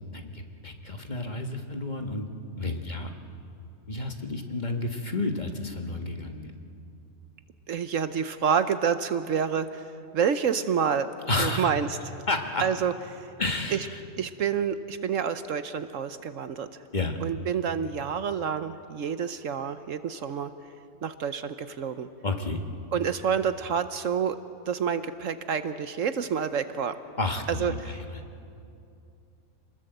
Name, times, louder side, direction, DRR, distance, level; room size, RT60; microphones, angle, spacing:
voice 1, 0.1-2.3 2.6-3.1 3.9-6.5 11.3-11.7 12.3-12.6 13.4-14.0 16.9-17.2 22.2-22.6 27.2-28.2, left 2 dB, 30° left, 4 dB, 1.6 m, -31 dB
voice 2, 7.7-9.9 10.1-11.1 11.4-11.9 12.6-13.3 13.7-13.9 14.2-16.7 17.2-20.5 21.0-22.1 22.9-24.4 24.7-27.0 27.5-28.0, right 7 dB, 65° right, 11 dB, 1.1 m, -28 dB
27.5 x 20.5 x 7.9 m, 2.5 s
omnidirectional pair, 1.5 m